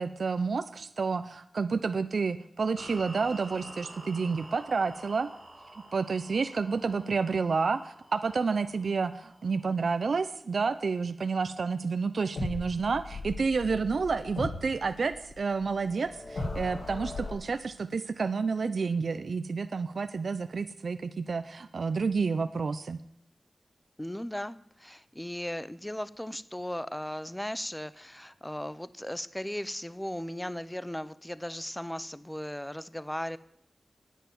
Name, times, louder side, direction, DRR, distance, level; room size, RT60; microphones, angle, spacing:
voice 1, 0.0-5.3 5.9-23.0, right 4 dB, 70° right, 11 dB, 0.6 m, -30 dB
sound 1, 2.8-9.9, right 1 dB, 25° right, 4.1 m, -49 dB
sound 2, 12.4-17.3, left 2 dB, 70° left, 3.4 m, -38 dB
voice 2, 24.0-33.4, left 1 dB, 10° left, 16 dB, 0.6 m, -37 dB
10.0 x 9.2 x 9.2 m, 0.73 s
wide cardioid pair, 85°, 0 cm